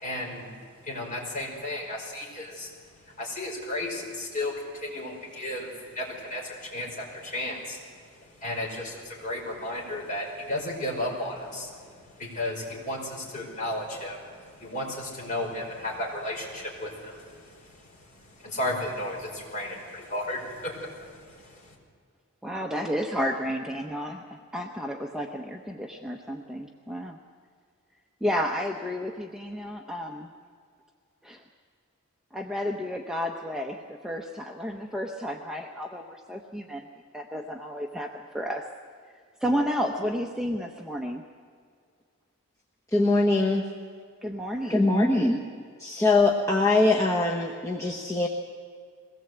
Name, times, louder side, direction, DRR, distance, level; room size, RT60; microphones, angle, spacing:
voice 1, 0.0-21.8, left 1 dB, 35° left, -2 dB, 5.3 m, -34 dB
voice 2, 22.4-27.2 28.2-30.3 31.2-31.4 32.3-36.8 37.1-38.7 39.4-41.2 44.2-44.9, equal, 5° right, 1 dB, 0.8 m, -32 dB
voice 3, 42.9-43.7 44.7-45.4 45.8-48.3, left 2 dB, 15° left, -1 dB, 1.1 m, -22 dB
22.0 x 18.0 x 7.9 m, 2.1 s
head